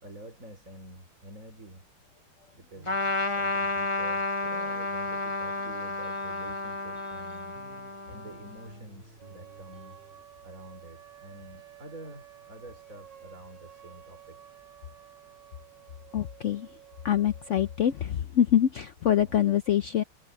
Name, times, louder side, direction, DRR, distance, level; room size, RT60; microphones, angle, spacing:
voice 1, 0.0-1.9 2.5-7.6 8.1-10.0 10.4-14.4 19.2-19.6, right 1 dB, 45° right, 4.8 m, -48 dB
sound 1, 2.8-10.2, right 1 dB, 30° right, 5.9 m, -55 dB
Trumpet, 2.9-8.7, left 2 dB, 25° left, 0.8 m, -31 dB
sound 2, 9.2-18.1, right 11 dB, 80° right, 2.2 m, -52 dB
voice 2, 16.1-16.7 17.0-20.0, left 10 dB, 70° left, 0.7 m, -25 dB
omnidirectional pair, 1.9 m